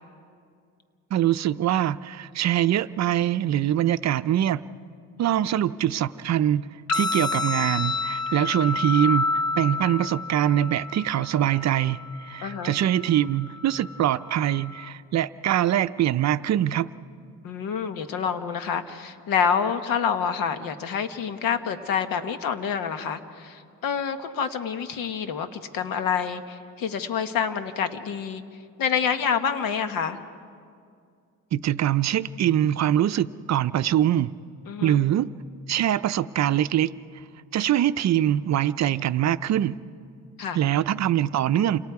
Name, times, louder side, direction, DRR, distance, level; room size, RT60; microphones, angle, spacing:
voice 1, 1.1-4.6 5.2-16.9 31.5-34.3 34.8-35.3 35.7-37.2 37.5-39.8 40.5-41.8, right 11 dB, 55° right, 14 dB, 0.6 m, -23 dB
sound 1, 6.9-14.9, left 3 dB, 55° left, 1.4 m, -30 dB
voice 2, 12.4-12.7 17.4-28.4 28.8-30.2 34.7-35.0 40.4-40.6, left 7 dB, 85° left, 9 dB, 1.3 m, -27 dB
29.0 x 26.5 x 4.8 m, 2.3 s
cardioid pair, 110°, 33 cm